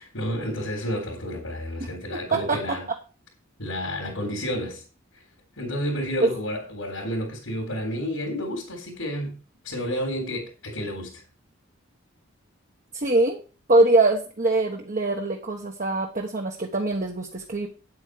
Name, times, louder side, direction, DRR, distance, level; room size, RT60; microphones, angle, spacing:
voice 1, 0.0-2.9 3.6-4.8 5.1-5.2 5.6-11.2, equal, 75° left, 3.8 m, -31 dB
voice 2, 2.3-2.8 6.2-6.3 12.9-13.4 13.7-17.7, right 2 dB, 40° right, 1.2 m, -23 dB
9.0 x 8.3 x 5.0 m
head